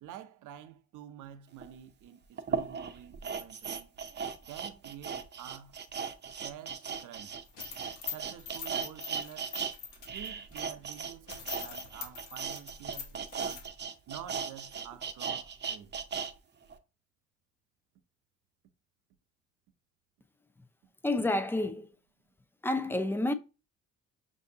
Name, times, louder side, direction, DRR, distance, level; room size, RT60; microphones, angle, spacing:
voice 1, 0.0-3.9 4.5-5.8 6.4-7.4 8.1-9.6 10.1-13.7 14.1-15.9, right 10 dB, 80° right, 0.6 m, -49 dB
sound 1, 1.6-1.7 2.4-9.7 10.0-16.3 16.7-16.8, right 6 dB, 35° right, 0.6 m, -37 dB
sound 2, 7.5-10.6 11.0-11.1 11.3-13.7, left 7 dB, 85° left, 1.2 m, -43 dB
voice 2, 21.0-21.9 22.6-23.3, left 2 dB, 5° left, 0.5 m, -29 dB
5.6 x 2.6 x 2.7 m
cardioid pair, 90°, 30 cm